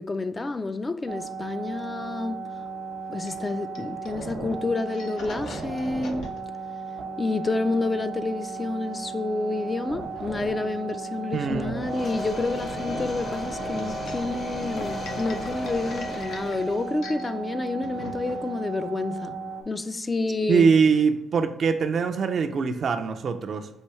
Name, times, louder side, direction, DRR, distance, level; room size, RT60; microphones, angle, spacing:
voice 1, 0.0-2.5 3.1-6.3 7.2-19.4 19.7-20.7, left 3 dB, 25° left, 0.3 m, -29 dB
sound 1, 1.1-19.6, right 4 dB, 70° right, 0.8 m, -36 dB
sound 2, 2.6-19.2, left 4 dB, 75° left, 0.6 m, -46 dB
voice 2, 11.3-11.8 20.5-23.7, right 5 dB, 55° right, 0.4 m, -23 dB
sound 3, 11.8-17.0, left 2 dB, 45° left, 0.8 m, -35 dB
5.6 x 2.6 x 3.1 m
cardioid pair, 90°, 0 cm